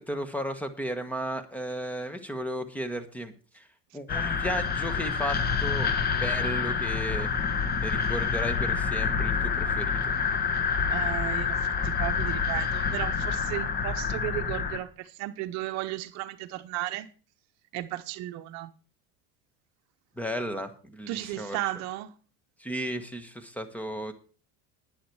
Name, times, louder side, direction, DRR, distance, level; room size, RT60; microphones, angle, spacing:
voice 1, 0.0-3.7 3.9-5.9 6.2-7.3 7.8-10.1 20.2-21.6 22.6-24.1, equal, 5° left, 1.3 m, -34 dB
sound 1, 4.1-14.8, left 6 dB, 30° left, 1.4 m, -27 dB
voice 2, 10.9-17.1 17.7-18.7 21.1-22.1, right 16 dB, 60° right, 0.8 m, -34 dB
11.5 x 9.7 x 4.7 m
supercardioid pair, 125°, 31 cm